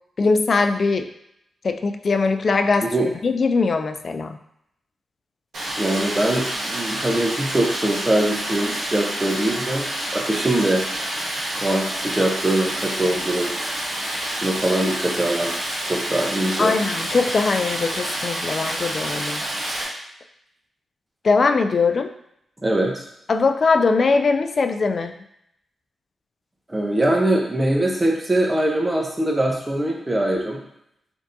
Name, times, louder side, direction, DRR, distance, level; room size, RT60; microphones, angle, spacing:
voice 1, 0.2-1.1 1.6-2.9 3.2-4.4 16.6-19.4 21.2-22.1 23.3-25.2, left 4 dB, 55° left, 7 dB, 0.3 m, -21 dB
Stream, 5.5-19.8, right 1 dB, 80° right, 1.4 m, -28 dB
voice 2, 5.8-9.8 10.1-10.8 11.6-13.5 14.4-15.5 15.8-16.7 22.6-23.1 26.7-30.6, right 1 dB, 20° right, 0 dB, 0.9 m, -22 dB
3.7 x 3.5 x 2.7 m, 0.77 s
cardioid pair, 55°, 0 cm